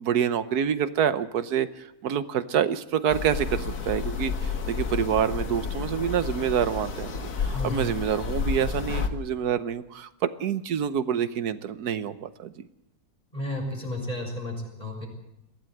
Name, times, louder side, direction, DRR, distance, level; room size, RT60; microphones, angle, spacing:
voice 1, 0.0-1.7 2.0-10.1 10.4-12.5, right 8 dB, 85° right, 13 dB, 1.5 m, -27 dB
sound 1, 3.1-9.1, left 5 dB, 80° left, 2.1 m, -31 dB
voice 2, 7.5-7.8 13.3-15.1, left 2 dB, 25° left, 1 dB, 6.6 m, -32 dB
22.5 x 16.0 x 7.8 m, 0.86 s
omnidirectional pair, 1.6 m